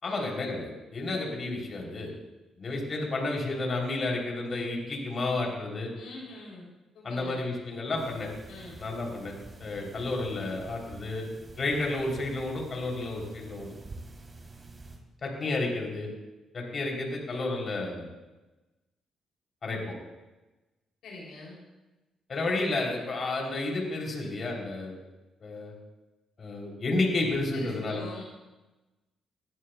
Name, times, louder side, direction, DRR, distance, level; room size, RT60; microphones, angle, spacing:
voice 1, 0.0-2.1 2.6-5.9 7.0-8.3 8.8-9.3 9.6-11.3 11.6-13.7 15.2-16.1 16.5-18.1 19.6-20.0 22.3-25.0 25.4-25.7 26.4-28.0, left 2 dB, 50° left, 0 dB, 3.1 m, -31 dB
voice 2, 5.9-6.6 6.9-7.4 8.5-8.8 21.0-21.6 27.5-28.2, left 2 dB, 70° left, -3 dB, 3.0 m, -44 dB
sound 1, 7.9-15.0, right 3 dB, 30° right, 3.0 m, -48 dB
18.0 x 11.0 x 2.2 m, 1.1 s
hypercardioid pair, 50°, 0 cm